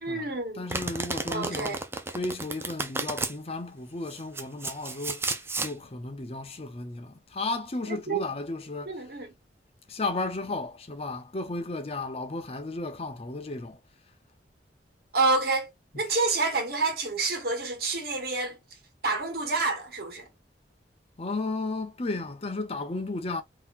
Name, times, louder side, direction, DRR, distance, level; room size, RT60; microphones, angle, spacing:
voice 1, 0.0-0.7 1.3-1.8 7.9-8.2 8.9-9.3 15.1-15.7 16.0-18.6 19.0-20.3, right 3 dB, 55° right, 1.3 m, -28 dB
voice 2, 0.5-1.8 2.1-9.0 9.9-13.8 21.2-23.4, left 2 dB, 35° left, 0.6 m, -34 dB
Domestic sounds home sounds, 0.7-3.3 4.1-5.7, right 3 dB, 15° right, 0.4 m, -32 dB
3.8 x 2.8 x 2.4 m
head